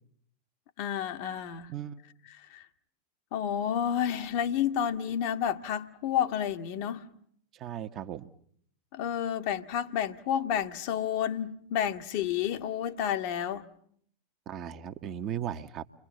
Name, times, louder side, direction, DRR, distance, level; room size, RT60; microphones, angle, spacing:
voice 1, 0.8-1.7 2.3-2.6 3.3-7.1 8.9-13.7, left 9 dB, 45° left, 7 dB, 1.6 m, -30 dB
voice 2, 7.6-8.3 14.5-15.8, right 9 dB, 35° right, 8 dB, 1.2 m, -36 dB
29.5 x 23.5 x 8.2 m, 0.65 s
figure-of-eight pair, 90°, 0 cm